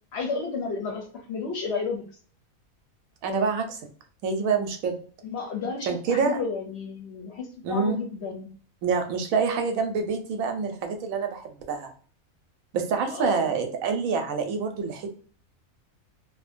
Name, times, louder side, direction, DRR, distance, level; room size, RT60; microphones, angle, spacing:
voice 1, 0.1-2.0 5.2-8.5 13.1-13.5, left 4 dB, 65° left, 2 dB, 0.7 m, -32 dB
voice 2, 3.2-3.8 4.2-5.0 5.8-6.4 7.6-8.0 8.8-11.9 12.7-15.1, right 5 dB, 80° right, 5 dB, 1.0 m, -26 dB
2.6 x 2.1 x 2.4 m, 0.43 s
omnidirectional pair, 1.5 m